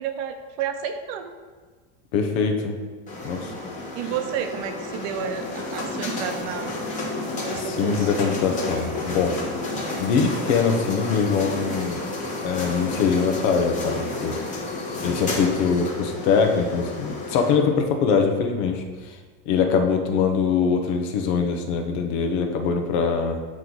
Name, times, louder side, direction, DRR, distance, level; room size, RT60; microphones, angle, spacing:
voice 1, 0.0-1.4 3.9-6.7 7.5-8.1, right 8 dB, 60° right, 7 dB, 0.7 m, -31 dB
voice 2, 2.1-2.8 3.2-3.5 7.5-9.4 10.0-12.0 12.4-14.4 15.0-19.2 19.5-23.4, left 5 dB, 80° left, 4 dB, 0.9 m, -23 dB
sound 1, 3.1-17.5, left 2 dB, 25° left, 1.1 m, -31 dB
8.7 x 3.1 x 3.9 m, 1.4 s
cardioid pair, 160°, 32 cm